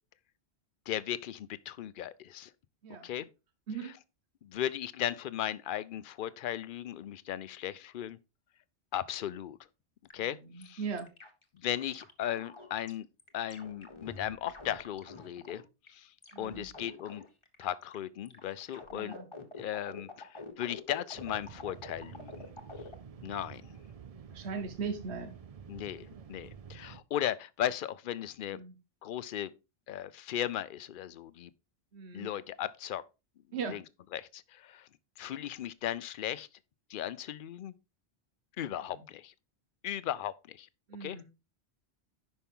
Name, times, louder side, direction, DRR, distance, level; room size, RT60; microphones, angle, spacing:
voice 1, 0.9-2.5 3.0-3.3 4.4-8.2 8.9-9.6 10.1-10.8 11.6-13.1 13.3-15.6 15.9-16.1 16.4-17.2 17.6-19.2 19.6-22.5 23.2-23.6 25.7-28.6 29.0-29.5 29.9-31.5 32.1-33.0 33.7-33.8 34.1-34.9 35.2-36.5 36.9-37.7 38.6-39.3 39.8-40.7 41.0-41.2, left 11 dB, 60° left, 0.6 m, -36 dB
sound 1, 10.1-10.2 10.6-10.7 11.0-12.9 13.2-15.9 16.2-18.0 18.3-22.9, left 3 dB, 25° left, 1.2 m, -47 dB
voice 2, 10.2-11.1 16.3-16.7 18.9-19.3 23.2-23.4 24.3-25.3 28.5-28.7 31.9-32.3 33.5-33.8 40.9-41.2, right 5 dB, 75° right, 1.3 m, -39 dB
sound 2, 21.1-27.0, right 7 dB, 45° right, 0.5 m, -50 dB
10.0 x 5.5 x 3.6 m
omnidirectional pair, 1.1 m